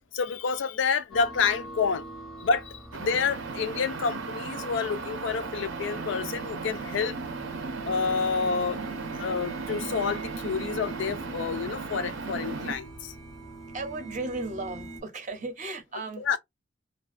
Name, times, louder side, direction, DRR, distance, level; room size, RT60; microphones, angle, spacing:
voice 1, 0.1-2.1 2.4-7.1 7.8-13.1 16.2-16.4, left 5 dB, 75° left, 0.4 m, -29 dB
sound 1, 1.1-15.0, right 3 dB, ahead, 0.6 m, -43 dB
sound 2, 2.9-12.8, right 4 dB, 85° right, 0.6 m, -36 dB
voice 2, 13.7-16.4, right 3 dB, 40° right, 0.6 m, -35 dB
2.4 x 2.2 x 2.4 m
head